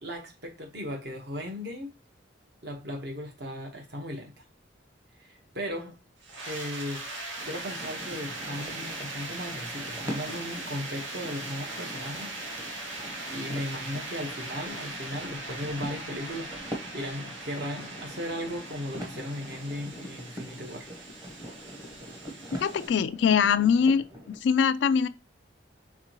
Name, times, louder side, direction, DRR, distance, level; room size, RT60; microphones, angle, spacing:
voice 1, 0.0-1.9 2.6-4.4 5.2-6.0 6.4-7.1 7.4-12.3 13.3-20.9, equal, 55° right, 1.1 m, -37 dB
sound 1, 6.2-22.9, right 2 dB, 75° right, 1.1 m, -40 dB
sound 2, 7.4-24.4, equal, 20° right, 0.9 m, -43 dB
voice 2, 22.6-25.1, left 6 dB, 65° left, 0.3 m, -23 dB
4.8 x 3.6 x 2.9 m
head